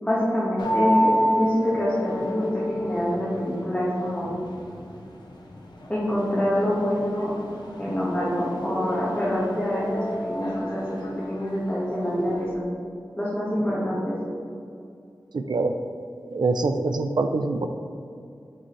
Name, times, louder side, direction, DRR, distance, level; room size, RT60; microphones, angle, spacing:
voice 1, 0.0-4.3 5.9-7.3 7.8-12.8 13.2-14.1, equal, 15° left, -8 dB, 1.5 m, -26 dB
sound 1, 0.6-12.5, equal, 80° left, 1.0 m, -30 dB
voice 2, 15.3-15.7 16.3-17.7, right 3 dB, 75° right, 7 dB, 0.5 m, -24 dB
7.0 x 6.1 x 3.2 m, 2.5 s
wide cardioid pair, 70°, 7 cm